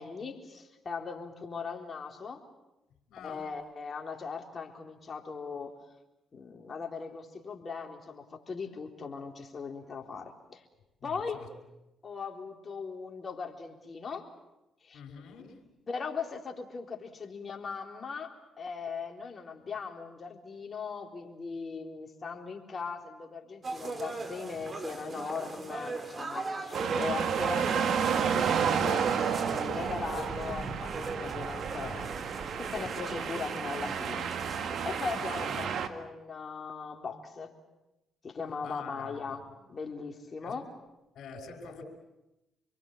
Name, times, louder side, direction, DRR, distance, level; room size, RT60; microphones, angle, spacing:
voice 1, 0.0-2.4 3.2-5.7 6.3-10.6 11.0-11.4 12.0-14.3 14.8-15.0 15.9-29.1 29.4-32.2 32.6-37.5 38.2-40.7, left 5 dB, 45° left, 3.8 m, -39 dB
voice 2, 3.1-3.5 11.0-11.5 14.9-15.6 35.1-35.3 38.6-39.2 40.4-40.5 41.1-41.8, left 5 dB, 70° left, 5.5 m, -46 dB
sound 1, 23.6-35.7, right 3 dB, 40° right, 3.6 m, -39 dB
sound 2, 26.7-35.9, right 7 dB, 70° right, 1.7 m, -31 dB
28.0 x 22.5 x 7.4 m
supercardioid pair, 55°, 0 cm